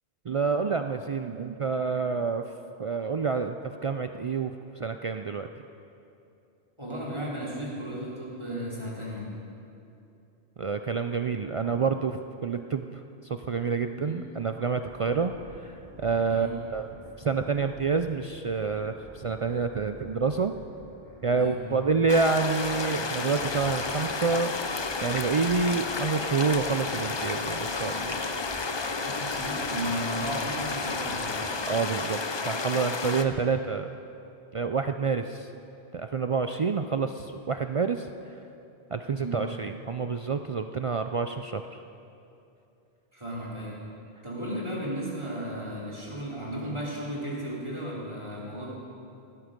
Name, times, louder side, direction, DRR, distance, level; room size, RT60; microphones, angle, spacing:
voice 1, 0.3-2.4 2.8-3.6 3.8-5.5 10.6-12.9 13.5-15.3 15.6-16.9 17.2-20.5 21.2-24.5 25.0-28.2 31.7-33.9 34.5-35.5 35.9-38.1 38.9-41.8, right 5 dB, 60° right, 7 dB, 0.3 m, -28 dB
voice 2, 6.8-9.3 14.0-14.1 16.3-16.6 21.3-21.6 29.0-31.4 39.1-39.4 43.1-43.9 44.2-48.7, right 1 dB, 25° right, -6 dB, 3.4 m, -35 dB
sound 1, 14.9-31.6, equal, 5° right, 2.5 m, -50 dB
sound 2, 22.1-33.2, left 4 dB, 30° left, 0.5 m, -31 dB
17.0 x 12.5 x 5.2 m, 2.8 s
omnidirectional pair, 1.1 m